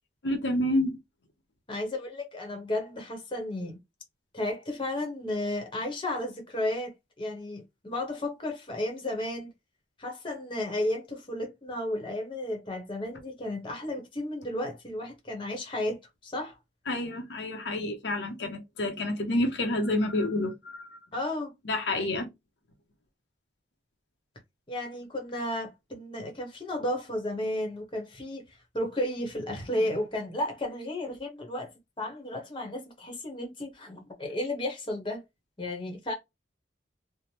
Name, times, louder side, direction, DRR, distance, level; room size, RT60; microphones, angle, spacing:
voice 1, 0.2-1.0 16.9-21.0 21.7-22.3, left 1 dB, 75° left, 0.6 m, -29 dB
voice 2, 1.7-3.8 4.3-9.5 10.0-16.5 21.1-21.5 24.7-28.4 28.7-35.2 35.6-36.1, left 1 dB, 25° left, 0.9 m, -33 dB
3.2 x 2.0 x 2.8 m
head